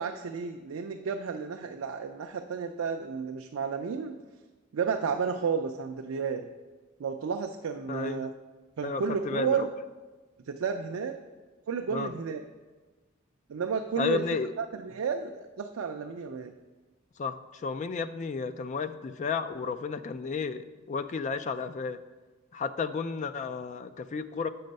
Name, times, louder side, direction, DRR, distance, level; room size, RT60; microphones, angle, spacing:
voice 1, 0.0-4.1 4.7-6.5 7.0-8.3 8.8-9.7 10.5-11.1 11.7-12.4 13.5-14.2 14.6-16.5, right 6 dB, 90° right, 4 dB, 0.4 m, -32 dB
voice 2, 7.9-8.3 8.8-9.7 11.9-12.1 14.0-14.5 17.2-22.0 22.5-24.5, left 5 dB, 35° left, 11 dB, 0.3 m, -32 dB
7.7 x 5.3 x 5.2 m, 1.3 s
head